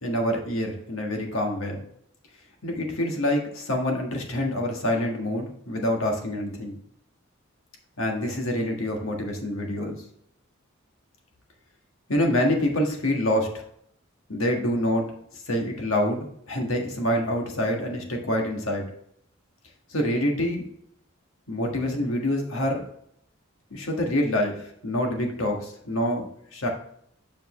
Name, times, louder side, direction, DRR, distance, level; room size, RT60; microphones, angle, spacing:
voice 1, 0.0-1.8 2.6-6.8 8.0-10.0 12.1-13.6 14.3-15.1 15.5-18.9 19.9-20.7 21.5-22.9 23.7-26.3 26.5-26.7, left 1 dB, 80° left, 2 dB, 1.6 m, -26 dB
7.2 x 5.3 x 3.1 m, 0.69 s
head